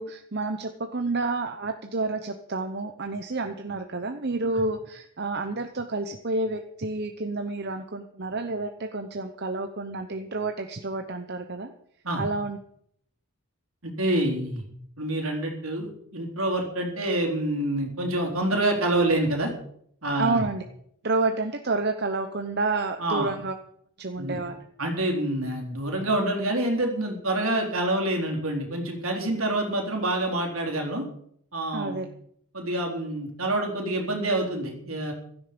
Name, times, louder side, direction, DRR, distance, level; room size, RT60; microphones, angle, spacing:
voice 1, 0.0-11.7 12.2-12.6 20.2-20.6 21.0-23.5 24.0-24.7 31.7-32.1, right 3 dB, 45° right, 6 dB, 0.9 m, -29 dB
voice 2, 13.8-14.6 15.0-19.5 20.0-20.4 23.0-23.3 24.2-24.4 24.8-31.0 31.5-32.0 32.5-35.1, right 1 dB, 70° right, 1 dB, 4.0 m, -27 dB
16.0 x 13.0 x 5.2 m, 0.67 s
head